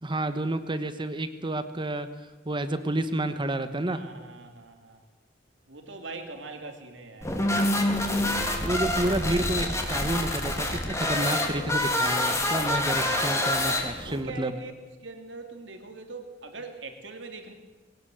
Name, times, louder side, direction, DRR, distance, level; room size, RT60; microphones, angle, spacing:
voice 1, 0.0-2.1 2.4-4.0 8.6-14.5, right 1 dB, 25° right, 10 dB, 1.1 m, -30 dB
voice 2, 3.9-5.0 5.7-7.3 10.5-11.3 13.0-14.7 15.0-17.5, right 3 dB, 70° right, 5 dB, 2.9 m, -42 dB
sound 1, 7.2-14.2, left 1 dB, 15° left, 3.0 m, -27 dB
21.0 x 18.5 x 7.9 m, 1.2 s
head